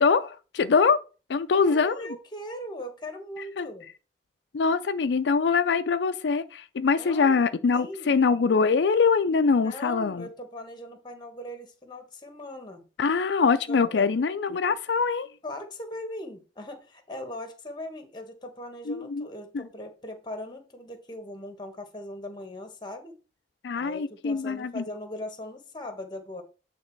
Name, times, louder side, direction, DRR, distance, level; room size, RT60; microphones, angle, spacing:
voice 1, 0.0-1.0 1.3-2.1 3.6-3.7 4.5-10.3 13.0-15.3 18.9-19.3 19.5-19.6 23.6-24.8, left 5 dB, 80° left, 0.4 m, -23 dB
voice 2, 1.6-3.8 7.0-7.4 7.7-8.2 9.6-12.9 13.7-14.1 15.4-23.2 23.8-26.4, left 1 dB, 25° left, 1.2 m, -39 dB
8.8 x 3.5 x 4.5 m
head